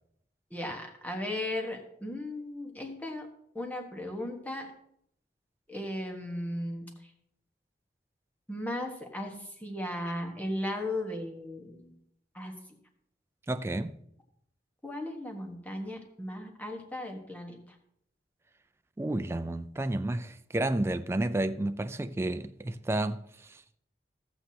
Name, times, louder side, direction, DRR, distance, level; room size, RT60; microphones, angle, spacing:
voice 1, 0.5-3.3 3.5-4.7 5.7-6.9 8.5-11.9 12.3-12.5 14.8-17.6, left 1 dB, 10° left, 1.3 m, -36 dB
voice 2, 13.5-13.9 19.0-23.2 23.5-23.6, right 1 dB, 15° right, 0.3 m, -31 dB
14.0 x 8.0 x 2.9 m
head